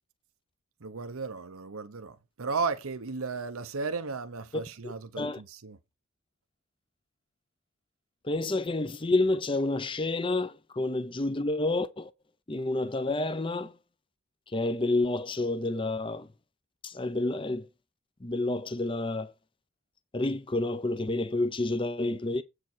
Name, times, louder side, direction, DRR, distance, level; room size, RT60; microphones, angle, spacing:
voice 1, 0.8-5.8, right 4 dB, 80° right, 0.9 m, -35 dB
voice 2, 4.5-5.4 8.2-12.1 12.5-13.7 14.5-16.3 16.8-17.7 18.2-19.3 20.1-22.4, left 2 dB, 25° left, 0.6 m, -29 dB
8.3 x 4.8 x 6.1 m
head